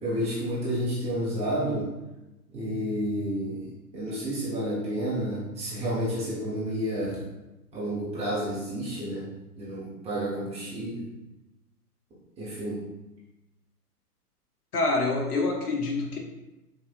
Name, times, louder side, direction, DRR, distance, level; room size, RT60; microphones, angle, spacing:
voice 1, 0.0-1.9 2.5-3.7 3.9-7.2 7.7-9.3 9.6-11.1 12.4-12.8, equal, 15° right, -8 dB, 1.0 m, -30 dB
voice 2, 14.7-16.2, left 3 dB, 70° left, 0 dB, 0.9 m, -26 dB
5.2 x 2.5 x 2.4 m, 1.0 s
figure-of-eight pair, 110°, 48 cm